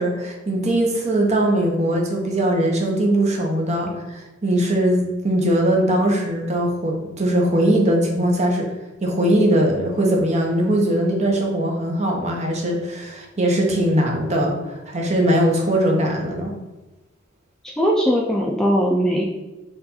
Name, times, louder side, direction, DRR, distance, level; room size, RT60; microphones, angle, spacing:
voice 1, 0.0-8.7 9.0-16.6, right 1 dB, 35° right, 1 dB, 0.8 m, -20 dB
voice 2, 17.6-19.2, equal, 5° left, -2 dB, 0.3 m, -19 dB
4.5 x 2.5 x 4.1 m, 1.1 s
head